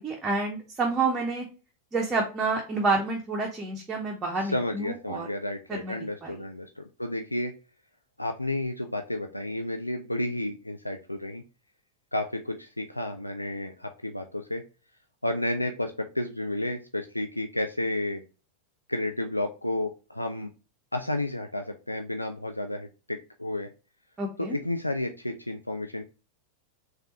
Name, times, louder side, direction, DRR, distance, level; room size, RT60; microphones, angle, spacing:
voice 1, 0.0-1.4 1.9-5.3 5.7-6.4 24.2-24.6, right 3 dB, 20° right, 0 dB, 0.7 m, -29 dB
voice 2, 4.4-7.5 8.2-11.4 12.1-14.6 15.2-18.2 18.9-20.5 20.9-23.7 24.4-26.0, left 1 dB, 85° left, 5 dB, 0.3 m, -31 dB
3.5 x 3.3 x 2.9 m, 0.33 s
figure-of-eight pair, 90°, 0 cm